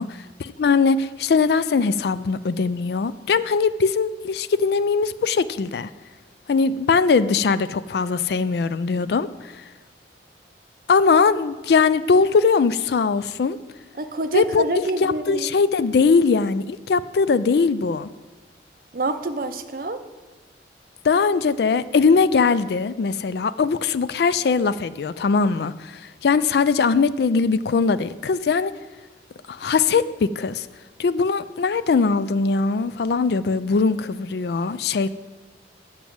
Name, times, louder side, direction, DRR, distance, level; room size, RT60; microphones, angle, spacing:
voice 1, 0.0-5.9 6.5-9.6 10.9-13.6 14.3-18.1 21.0-28.7 29.5-30.7 31.0-35.1, left 5 dB, 65° left, 15 dB, 0.4 m, -21 dB
voice 2, 14.0-15.5 18.9-20.0, right 2 dB, 50° right, 8 dB, 0.6 m, -26 dB
7.1 x 6.0 x 7.6 m, 1.2 s
head